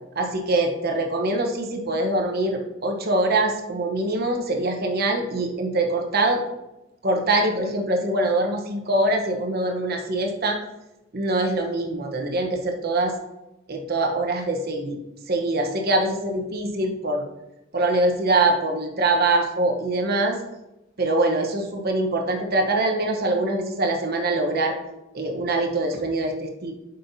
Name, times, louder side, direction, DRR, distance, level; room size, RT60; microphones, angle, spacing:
voice 1, 0.2-6.4 7.0-10.6 11.1-13.1 13.7-15.0 15.3-17.3 17.7-20.4 21.0-24.8 25.1-26.7, right 2 dB, 55° right, 2 dB, 1.0 m, -23 dB
7.9 x 5.4 x 2.7 m, 0.93 s
head